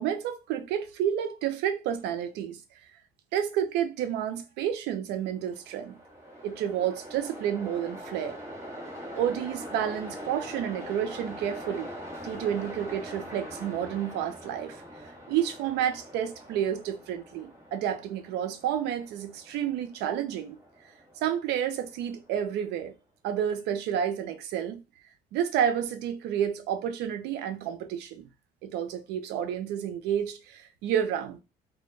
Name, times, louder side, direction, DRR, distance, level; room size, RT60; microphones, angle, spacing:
voice 1, 0.0-2.6 3.3-6.0 6.4-8.4 9.1-11.9 12.2-14.8 15.3-20.6 21.2-22.9 23.2-24.8 25.3-28.3 28.6-31.4, right 9 dB, 85° right, 0.5 m, -30 dB
Train, 5.4-22.6, equal, 15° right, 0.9 m, -43 dB
2.2 x 2.1 x 3.1 m
cardioid pair, 110°, 17 cm